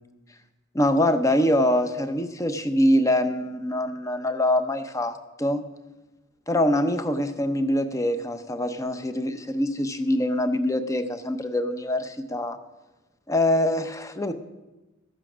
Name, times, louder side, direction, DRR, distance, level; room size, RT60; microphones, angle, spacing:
voice 1, 0.7-5.6 6.5-12.6 13.3-14.3, left 1 dB, 15° left, 9 dB, 0.7 m, -24 dB
13.5 x 8.3 x 6.1 m, 1.1 s
head